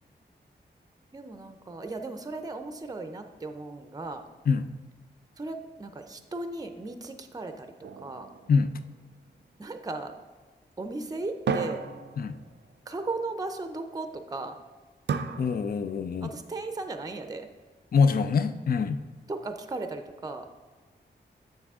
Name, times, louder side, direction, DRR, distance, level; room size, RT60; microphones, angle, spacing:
voice 1, 1.1-4.2 5.4-8.3 9.6-10.1 10.8-11.8 12.9-14.6 16.2-17.5 19.3-20.5, right 3 dB, 20° right, 7 dB, 0.5 m, -36 dB
sound 1, 7.8-9.4 11.5-12.8 15.1-16.2, right 5 dB, 70° right, 0.5 m, -34 dB
voice 2, 15.4-16.3 17.9-19.0, left 5 dB, 50° left, 11 dB, 0.4 m, -24 dB
7.4 x 6.1 x 3.6 m, 1.3 s
wide cardioid pair, 75°, 19 cm